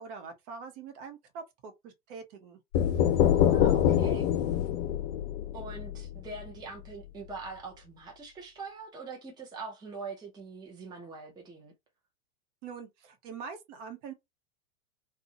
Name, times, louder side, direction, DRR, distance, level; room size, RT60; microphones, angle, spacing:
voice 1, 0.0-2.6 12.6-14.1, right 5 dB, 50° right, 1.0 m, -44 dB
sound 1, 2.7-6.5, left 10 dB, 60° left, 0.6 m, -25 dB
voice 2, 3.5-4.4 5.5-11.7, right 4 dB, 10° right, 0.7 m, -43 dB
2.6 x 2.3 x 2.7 m
hypercardioid pair, 110°, 45 cm